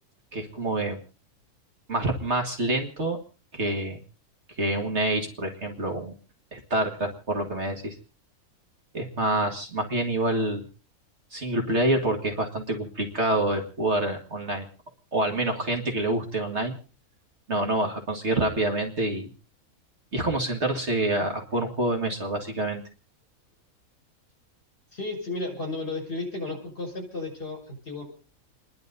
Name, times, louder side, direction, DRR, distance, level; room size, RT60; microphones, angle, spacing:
voice 1, 0.3-1.0 1.9-3.2 3.5-4.0 4.6-6.1 6.5-8.0 8.9-10.6 11.3-14.7 15.1-16.8 17.5-19.3 20.1-22.8, right 2 dB, 50° right, 3 dB, 2.3 m, -27 dB
voice 2, 24.9-28.0, left 2 dB, 45° left, 1 dB, 6.3 m, -33 dB
29.5 x 11.0 x 4.0 m, 0.36 s
omnidirectional pair, 1.6 m